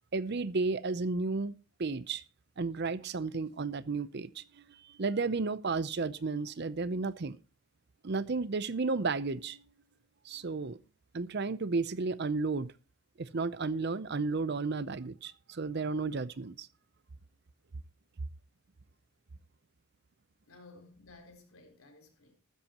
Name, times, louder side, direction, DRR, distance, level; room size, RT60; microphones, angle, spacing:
voice 1, 0.1-1.5 1.8-2.2 2.6-7.4 8.0-9.6 10.2-10.8 11.1-12.7 13.2-16.7, right 3 dB, 50° right, 0.6 m, -33 dB
voice 2, 20.5-22.4, left 3 dB, 80° left, 4.1 m, -55 dB
15.0 x 13.0 x 3.0 m
head